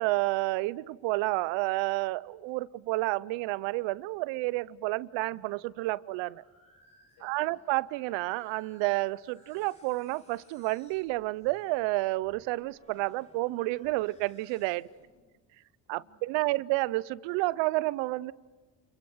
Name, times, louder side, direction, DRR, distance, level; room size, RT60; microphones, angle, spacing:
voice 1, 0.0-6.4 7.2-14.9 15.9-18.3, right 20 dB, 80° right, 0.7 m, -30 dB
sound 1, 5.1-15.1, left 1 dB, 15° left, 4.7 m, -63 dB
voice 2, 7.1-7.6 14.8-16.6, left 2 dB, 85° left, 4.9 m, -66 dB
29.0 x 22.5 x 6.4 m
supercardioid pair, 65°, 43 cm